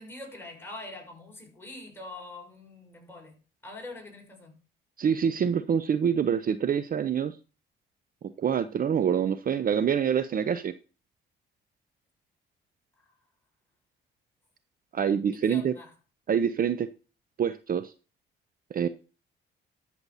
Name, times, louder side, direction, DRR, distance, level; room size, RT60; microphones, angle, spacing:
voice 1, 0.0-4.6 13.0-13.1 15.3-15.9, left 2 dB, 10° left, 6.2 m, -44 dB
voice 2, 5.0-7.3 8.4-10.7 14.9-15.7 16.3-16.9 17.4-17.9 18.7-18.9, right 8 dB, 45° right, 0.6 m, -26 dB
13.0 x 6.9 x 4.1 m
cardioid pair, 90°, 20 cm